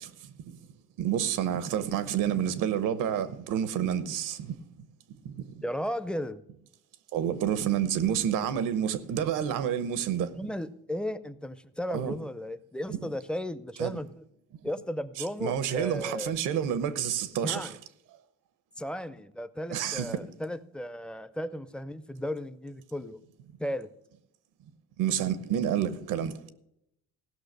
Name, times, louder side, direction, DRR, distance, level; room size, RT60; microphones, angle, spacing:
voice 1, 1.0-4.5 7.1-10.3 11.9-12.1 13.8-13.9 15.4-17.7 19.7-20.2 25.0-26.3, right 9 dB, 90° right, 0.9 m, -28 dB
voice 2, 5.6-6.4 10.3-14.3 14.6-16.4 17.4-17.8 18.8-23.2 23.6-23.9, equal, 5° left, 0.5 m, -35 dB
16.0 x 6.0 x 6.5 m
cardioid pair, 115°, 31 cm